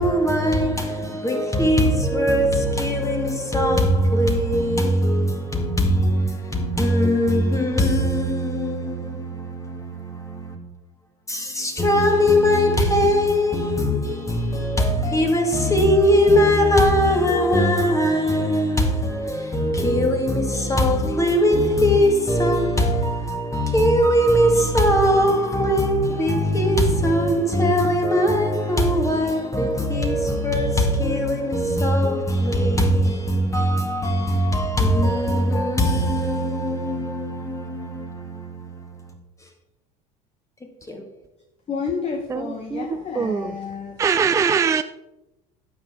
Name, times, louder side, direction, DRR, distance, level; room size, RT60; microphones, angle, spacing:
voice 1, 0.0-10.6 11.3-38.9 40.9-41.0, equal, 15° left, 2.1 m, -20 dB
voice 2, 41.7-44.0, left 5 dB, 35° left, 1.3 m, -30 dB
voice 3, 42.3-43.6 44.0-44.8, right 6 dB, 15° right, 0.4 m, -22 dB
12.0 x 7.8 x 3.8 m
hypercardioid pair, 85°, 18 cm